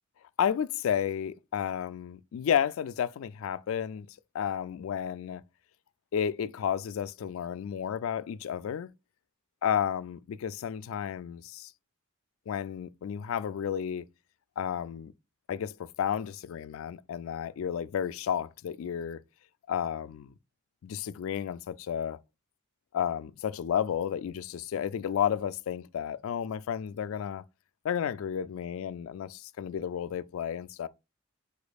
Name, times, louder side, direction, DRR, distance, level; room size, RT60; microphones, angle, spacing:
voice 1, 0.4-4.1 4.3-5.4 6.1-8.9 9.6-11.7 12.5-14.0 14.6-15.1 15.5-19.2 19.7-20.3 20.8-22.2 22.9-27.4 27.8-30.9, left 8 dB, 70° left, 0.3 m, -32 dB
5.0 x 4.3 x 2.3 m
head